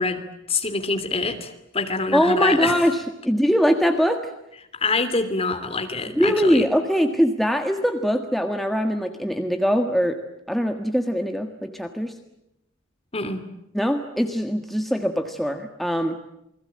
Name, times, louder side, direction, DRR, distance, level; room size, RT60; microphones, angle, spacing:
voice 1, 0.0-2.8 4.7-6.7 13.1-13.4, left 3 dB, 30° left, 8 dB, 3.0 m, -25 dB
voice 2, 2.1-3.0 3.2-4.3 6.2-10.2 10.5-12.1 13.7-16.2, equal, ahead, 5 dB, 1.6 m, -22 dB
29.0 x 21.5 x 8.7 m, 0.82 s
head